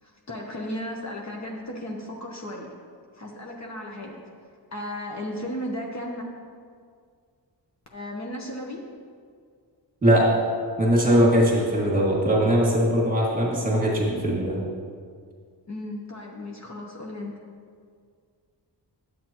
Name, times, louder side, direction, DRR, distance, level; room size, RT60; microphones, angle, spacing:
voice 1, 0.0-2.7 3.2-4.2 4.7-6.2 7.9-8.8 15.7-17.3, left 1 dB, 40° left, -1 dB, 1.0 m, -35 dB
voice 2, 10.0-10.4 10.8-14.6, equal, 20° right, -4 dB, 2.0 m, -20 dB
11.0 x 7.8 x 3.0 m, 2.1 s
wide cardioid pair, 135°, 42 cm